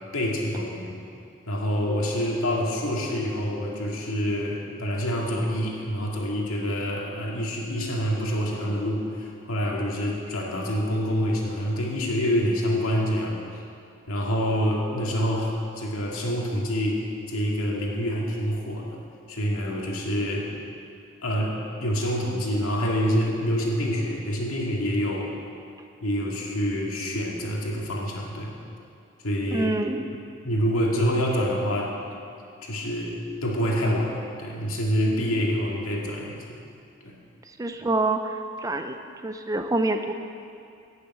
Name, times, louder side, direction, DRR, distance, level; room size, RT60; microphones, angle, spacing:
voice 1, 0.1-1.0 1.5-13.4 14.1-17.0 17.3-19.0 19.3-20.5 21.2-25.3 26.0-28.5 29.2-29.7 30.4-32.2 32.6-36.6 37.0-37.2, equal, 85° left, -2 dB, 2.1 m, -26 dB
voice 2, 29.5-30.1 37.6-38.3 38.6-39.0 39.2-40.1, right 2 dB, 15° right, 7 dB, 0.4 m, -26 dB
11.5 x 6.9 x 8.8 m, 2.5 s
head